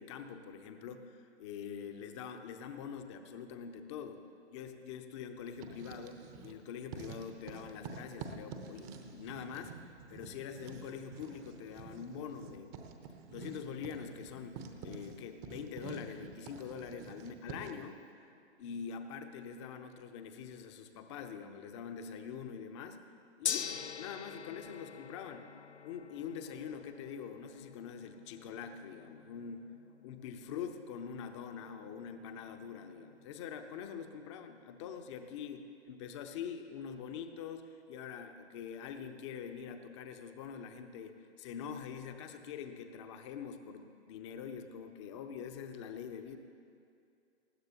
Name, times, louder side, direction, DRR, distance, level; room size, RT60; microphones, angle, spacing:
voice 1, 0.0-4.2 4.5-12.8 13.3-14.6 14.8-18.0 18.6-23.0 23.4-25.5 25.8-29.6 30.0-46.4, left 7 dB, 25° left, 7 dB, 0.7 m, -44 dB
Writing, 5.5-6.6 6.9-17.9, right 4 dB, 20° right, 0.8 m, -48 dB
Gong, 23.4-33.7, left 8 dB, 70° left, 0.6 m, -45 dB
19.5 x 15.5 x 2.9 m, 2.5 s
figure-of-eight pair, 120°, 34 cm